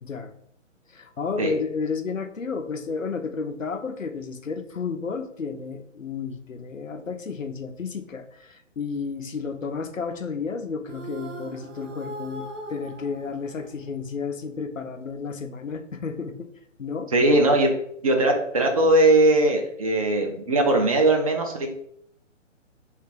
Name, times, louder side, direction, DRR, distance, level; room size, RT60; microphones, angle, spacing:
voice 1, 0.0-0.3 0.9-16.5 16.8-17.1, left 5 dB, 90° left, 7 dB, 0.6 m, -32 dB
sound 1, 10.9-14.3, right 2 dB, 75° right, 1.0 m, -40 dB
voice 2, 17.1-17.7 18.0-21.7, right 2 dB, 30° right, 2 dB, 0.5 m, -20 dB
3.3 x 2.9 x 4.5 m, 0.70 s
figure-of-eight pair, 135°, 38 cm